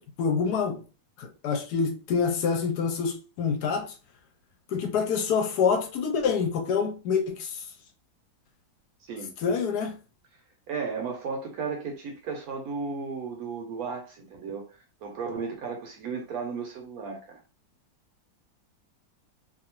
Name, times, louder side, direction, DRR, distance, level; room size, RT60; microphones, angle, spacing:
voice 1, 0.2-0.8 1.2-3.9 4.7-7.6 9.4-10.0, left 6 dB, 75° left, 1.1 m, -26 dB
voice 2, 10.7-14.7 15.0-17.4, right 5 dB, 70° right, 1.0 m, -34 dB
2.7 x 2.4 x 2.9 m
omnidirectional pair, 1.9 m